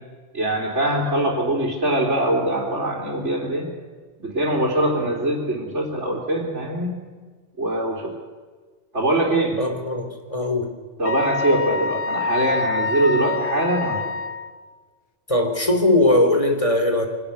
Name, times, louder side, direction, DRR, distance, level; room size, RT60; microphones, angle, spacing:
voice 1, 0.3-3.7 4.2-6.9 7.6-8.1 8.9-9.6 11.0-14.1, right 1 dB, 85° right, -3 dB, 3.8 m, -23 dB
voice 2, 9.6-10.7 15.3-17.1, left 1 dB, 30° left, 5 dB, 3.2 m, -20 dB
Wind instrument woodwind instrument, 11.0-14.5, left 3 dB, 55° left, 1.1 m, -26 dB
24.5 x 18.0 x 6.9 m, 1.5 s
omnidirectional pair, 1.2 m